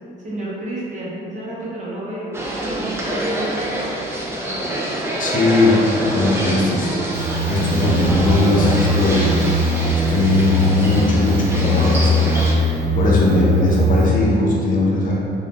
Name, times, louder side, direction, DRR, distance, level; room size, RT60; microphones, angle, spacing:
voice 1, 0.2-4.0, right 1 dB, 35° right, -7 dB, 0.9 m, -30 dB
sound 1, 2.3-12.5, right 1 dB, 15° right, 0.4 m, -26 dB
voice 2, 5.2-6.9 7.5-9.2 10.1-12.4 12.9-15.1, left 2 dB, 45° left, -4 dB, 0.6 m, -18 dB
sound 2, 7.1-14.1, left 1 dB, 90° right, 0.9 m, -20 dB
3.2 x 2.3 x 2.4 m, 2.6 s
cardioid pair, 90°, 20 cm